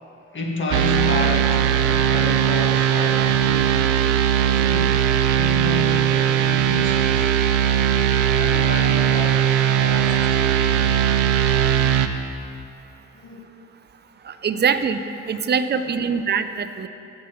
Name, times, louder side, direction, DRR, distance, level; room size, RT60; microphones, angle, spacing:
voice 1, 0.3-4.1 4.4-5.0 5.3-7.3 8.0-10.9 13.1-13.5 15.4-16.1, left 2 dB, 40° left, 0 dB, 1.7 m, -31 dB
sound 1, 0.7-12.1, right 9 dB, 85° right, 0.5 m, -19 dB
voice 2, 14.3-16.9, right 6 dB, 35° right, 10 dB, 0.5 m, -23 dB
16.0 x 7.2 x 3.1 m, 2.6 s
cardioid pair, 90°, 30 cm